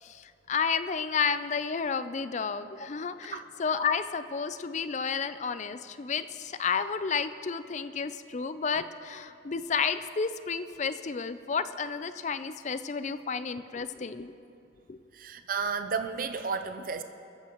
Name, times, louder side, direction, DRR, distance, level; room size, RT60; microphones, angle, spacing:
voice 1, 0.0-14.3 14.9-15.0, left 5 dB, 40° left, 12 dB, 0.4 m, -31 dB
voice 2, 15.1-17.0, right 5 dB, 45° right, 9 dB, 0.5 m, -32 dB
23.0 x 14.0 x 3.0 m, 2.7 s
head